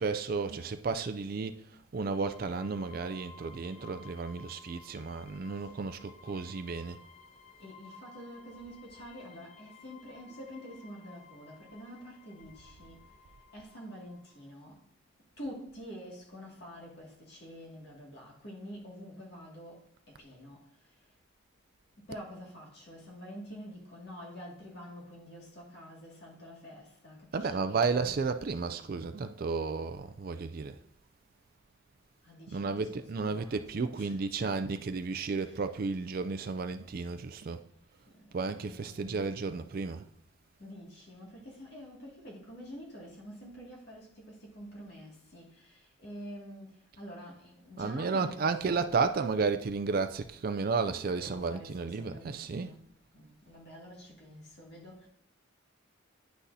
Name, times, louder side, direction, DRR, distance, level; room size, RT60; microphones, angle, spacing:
voice 1, 0.0-1.6 1.9-7.0 27.3-30.8 32.5-37.6 38.3-40.0 47.8-52.7, right 4 dB, 45° right, 0.4 m, -33 dB
sound 1, 2.2-14.6, left 4 dB, 35° left, 0.6 m, -55 dB
voice 2, 7.6-13.0 13.5-14.8 15.4-20.7 22.1-28.2 32.2-34.8 35.1-35.6 38.1-39.2 40.6-48.8 51.2-52.8 53.1-55.1, equal, 55° left, 2.2 m, -47 dB
9.8 x 6.1 x 2.7 m
head